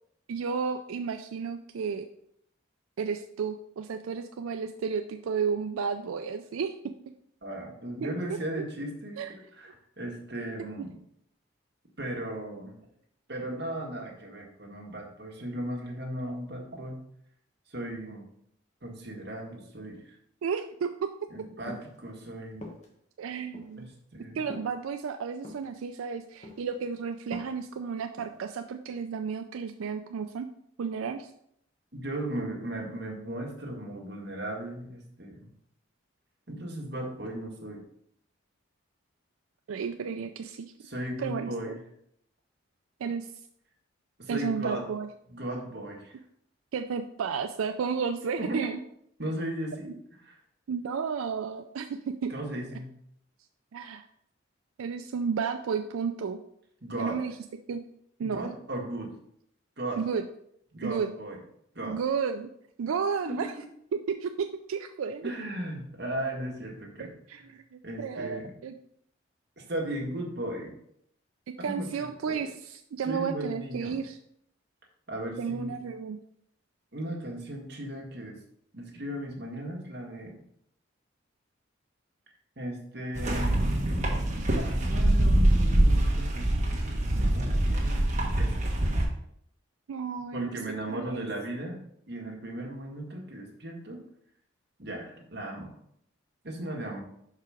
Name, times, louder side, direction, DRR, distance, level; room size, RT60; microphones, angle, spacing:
voice 1, 0.3-2.1 3.0-6.7 8.0-8.1 9.2-9.3 10.8-10.9 20.4-21.3 23.2-23.9 24.3-30.5 30.8-31.3 39.7-40.7 41.2-41.7 43.0-43.3 44.3-45.1 46.7-48.8 49.9-50.0 50.7-52.3 53.7-54.0 54.8-56.4 57.0-57.3 57.7-57.8 58.2-58.5 60.0-60.2 60.8-61.1 61.8-62.5 62.8-63.5 63.9-65.3 67.0-68.8 71.6-74.2 75.4-76.2 89.9-90.6 90.9-91.3, right 6 dB, 90° right, 7 dB, 0.4 m, -32 dB
voice 2, 7.4-10.9 12.0-12.7 13.3-17.0 17.7-18.3 18.8-20.2 21.3-22.6 23.8-24.4 31.9-35.5 36.5-37.8 40.8-41.8 44.2-44.8 45.3-46.2 48.4-48.7 49.2-49.9 50.2-50.4 52.3-52.9 56.8-57.2 58.2-59.1 59.8-60.0 60.7-61.4 61.7-62.0 63.2-63.5 65.2-67.1 67.8-68.5 69.6-70.7 71.6-72.4 73.0-74.0 75.1-75.8 76.9-78.4 78.7-80.4 82.6-83.6 84.5-88.7 90.3-91.8 92.1-94.0 94.8-95.7 96.4-97.0, right 1 dB, 55° right, -1 dB, 1.7 m, -36 dB
sound 1, 21.7-22.0 22.6-22.9 23.5-23.7 24.5-24.7 25.4-25.7 26.4-26.9 27.1-27.6 28.2-28.4, equal, 35° left, 1.2 m, -42 dB
sound 2, 83.1-89.0, right 1 dB, 35° right, 1.4 m, -24 dB
5.7 x 4.8 x 4.9 m, 0.72 s
head